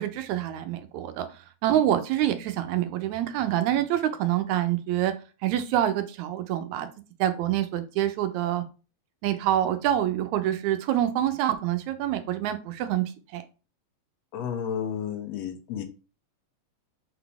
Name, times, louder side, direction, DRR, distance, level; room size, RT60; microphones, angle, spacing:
voice 1, 0.0-5.1 5.4-6.9 7.2-8.6 9.2-13.0 13.3-13.4, right 12 dB, 85° right, 2.0 m, -26 dB
voice 2, 14.3-15.8, left 8 dB, 70° left, 1.8 m, -32 dB
6.9 x 4.0 x 3.4 m
omnidirectional pair, 3.3 m